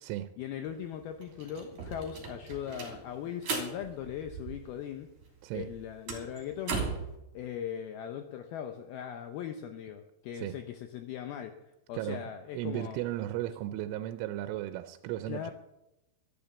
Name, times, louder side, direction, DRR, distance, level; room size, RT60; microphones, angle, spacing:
voice 1, 0.4-5.1 5.5-6.9 7.3-11.5 11.9-13.0 15.3-15.5, left 9 dB, 90° left, 7 dB, 2.1 m, -39 dB
sound 1, 0.7-0.8 1.0-4.9 5.2-7.1, right 5 dB, 45° right, 4.1 m, -38 dB
voice 2, 12.5-15.5, right 13 dB, 90° right, 10 dB, 3.2 m, -35 dB
14.0 x 11.5 x 7.1 m, 0.90 s
omnidirectional pair, 5.5 m